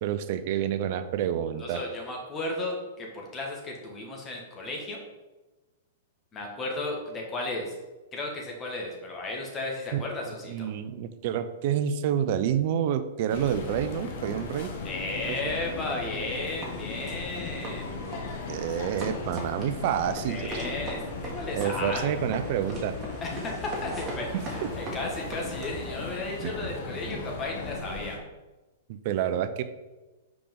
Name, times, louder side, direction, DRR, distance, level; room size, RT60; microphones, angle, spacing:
voice 1, 0.0-1.8 9.9-14.7 15.3-15.4 18.5-20.6 21.5-23.0 24.6-24.9 26.4-26.7 28.9-29.6, right 9 dB, 55° right, 11 dB, 0.5 m, -29 dB
voice 2, 1.6-5.0 6.3-7.7 8.1-10.7 14.8-18.0 20.3-22.2 23.2-28.2, left 2 dB, 25° left, 0 dB, 1.6 m, -34 dB
sound 1, 13.3-28.2, left 4 dB, 60° left, 1.1 m, -37 dB
sound 2, 16.6-25.9, right 1 dB, 25° right, 1.7 m, -40 dB
sound 3, 22.3-26.3, right 1 dB, 10° right, 1.3 m, -46 dB
5.0 x 4.8 x 3.9 m, 1.1 s
hypercardioid pair, 120°, 0 cm